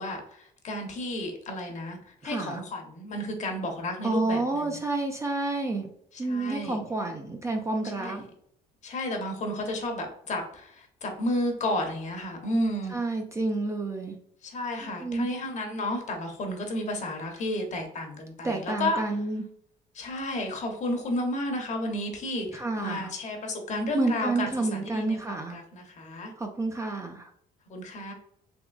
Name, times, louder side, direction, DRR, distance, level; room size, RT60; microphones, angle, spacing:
voice 1, 0.0-4.8 6.1-6.8 8.0-8.3 8.8-13.0 14.4-19.0 19.9-26.3 27.7-28.1, left 1 dB, 45° left, 3 dB, 0.9 m, -32 dB
voice 2, 2.2-2.6 4.0-5.9 6.2-8.2 12.9-14.2 14.8-15.3 18.4-19.5 22.5-23.1 23.9-25.6 26.4-27.3, right 2 dB, 15° right, 3 dB, 0.4 m, -29 dB
3.6 x 2.9 x 2.4 m, 0.68 s
cardioid pair, 110°, 17 cm